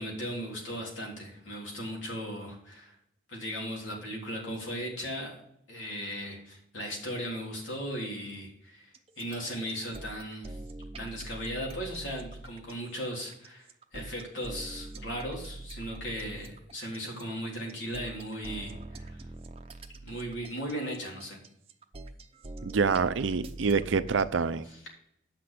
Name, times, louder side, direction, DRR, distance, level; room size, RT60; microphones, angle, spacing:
voice 1, 0.0-3.0 3.3-5.3 5.7-8.9 9.2-10.6 11.0-19.2 20.0-21.4 24.7-24.9, equal, 85° left, 3.5 m, -37 dB
sound 1, 8.9-24.3, right 2 dB, 30° right, 0.7 m, -44 dB
voice 2, 22.7-24.7, right 5 dB, 80° right, 0.6 m, -26 dB
8.5 x 6.0 x 6.7 m
head